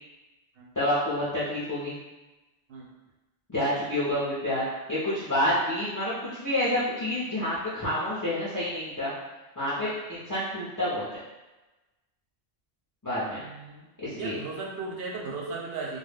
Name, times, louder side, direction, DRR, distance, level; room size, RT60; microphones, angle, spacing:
voice 1, 0.8-1.9 3.5-4.6 4.9-9.1 9.6-11.0 13.0-13.4 14.0-14.4, left 1 dB, 30° left, -10 dB, 0.4 m, -28 dB
voice 2, 13.4-13.9 14.1-16.0, right 3 dB, 65° right, -1 dB, 0.7 m, -36 dB
2.3 x 2.0 x 3.3 m, 1.1 s
omnidirectional pair, 1.2 m